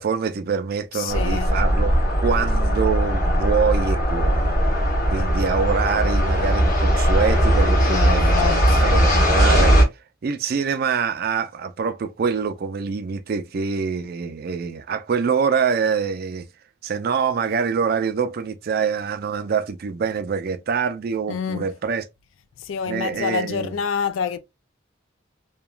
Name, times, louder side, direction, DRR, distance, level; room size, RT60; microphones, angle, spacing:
voice 1, 0.0-1.9 2.2-9.8 10.2-16.5 16.8-22.0 22.9-23.7, right 6 dB, 50° right, 0.4 m, -25 dB
voice 2, 0.9-1.6 7.9-8.8 21.3-21.7 22.6-24.4, left 6 dB, 85° left, 0.4 m, -27 dB
sound 1, 1.1-9.8, equal, 45° left, 1.2 m, -19 dB
2.9 x 2.2 x 2.3 m
head